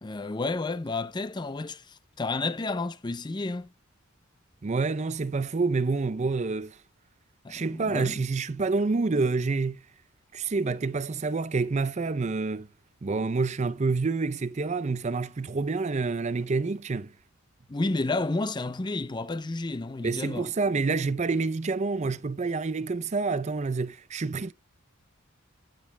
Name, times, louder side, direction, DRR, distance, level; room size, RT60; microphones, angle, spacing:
voice 1, 0.0-3.7 7.4-8.2 17.7-20.5, left 3 dB, 20° left, 0.5 m, -31 dB
voice 2, 4.6-6.8 7.5-9.8 10.3-12.7 13.0-17.1 20.0-24.5, right 4 dB, 35° right, 0.5 m, -28 dB
10.0 x 9.2 x 2.2 m
head